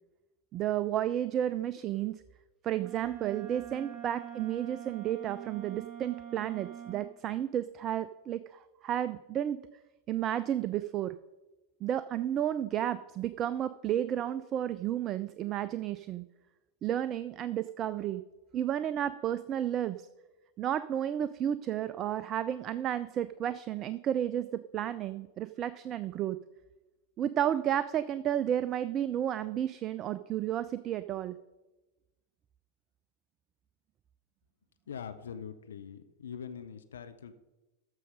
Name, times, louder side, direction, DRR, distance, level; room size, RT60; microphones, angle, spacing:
voice 1, 0.5-2.2 2.6-9.6 10.1-11.2 11.8-16.2 16.8-18.2 18.5-20.0 20.6-26.4 27.2-31.4, right 11 dB, 30° right, 14 dB, 0.3 m, -32 dB
Wind instrument woodwind instrument, 2.8-7.1, right 9 dB, 10° right, 1.8 m, -45 dB
voice 2, 34.9-37.3, left 7 dB, 65° left, 9 dB, 0.7 m, -43 dB
14.0 x 6.4 x 5.2 m, 1.1 s
figure-of-eight pair, 90°, 0 cm